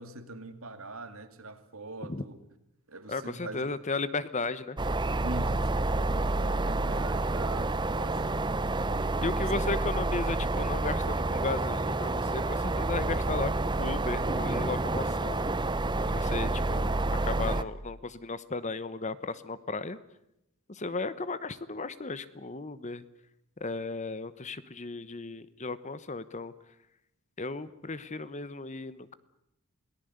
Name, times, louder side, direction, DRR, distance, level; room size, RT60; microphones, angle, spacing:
voice 1, 0.0-2.4 2.9-3.7 5.2-8.6 8.8-9.6 16.4-16.5, right 2 dB, 70° right, 9 dB, 2.5 m, -43 dB
voice 2, 3.1-4.8 9.2-15.5 16.0-20.0 20.7-23.0 23.6-26.5 27.4-29.1, left 3 dB, 35° left, 15 dB, 1.0 m, -35 dB
sound 1, 4.8-17.6, right 2 dB, 20° right, 0.8 m, -29 dB
28.0 x 18.5 x 8.0 m, 0.82 s
head